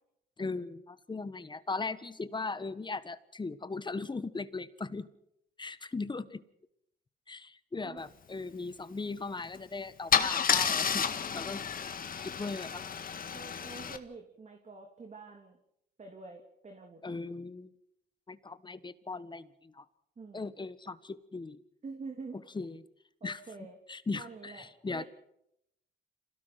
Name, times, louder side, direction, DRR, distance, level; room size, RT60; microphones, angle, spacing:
voice 1, 0.4-5.1 5.6-6.4 7.3-11.0 11.3-11.6 12.2-12.8 17.0-17.7 18.3-19.8 20.3-21.6 22.5-22.9 23.2-25.0, left 3 dB, 25° left, 14 dB, 1.4 m, -38 dB
Car / Engine starting / Idling, 9.4-9.6 10.1-14.0, left 7 dB, 45° left, 1.9 m, -31 dB
voice 2, 13.3-15.6 16.0-17.0 20.2-20.5 21.8-22.4 23.2-23.8 24.1-25.1, right 4 dB, 35° right, 3 dB, 3.1 m, -47 dB
27.0 x 17.5 x 6.0 m, 0.76 s
cardioid pair, 90°, 20 cm